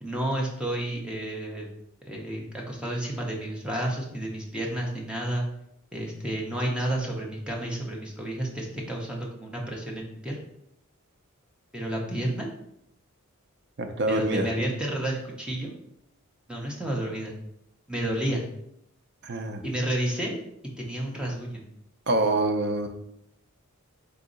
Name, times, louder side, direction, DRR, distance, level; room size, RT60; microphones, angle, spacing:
voice 1, 0.0-1.7 2.1-5.4 5.9-10.4 11.7-12.5 14.1-15.7 16.5-17.3 17.9-18.4 19.6-20.4 20.8-21.6, right 1 dB, 5° right, -1 dB, 0.7 m, -31 dB
voice 2, 13.8-14.5 19.2-19.6 22.1-22.9, right 2 dB, 50° right, 5 dB, 0.5 m, -25 dB
4.0 x 2.7 x 3.8 m, 0.77 s
head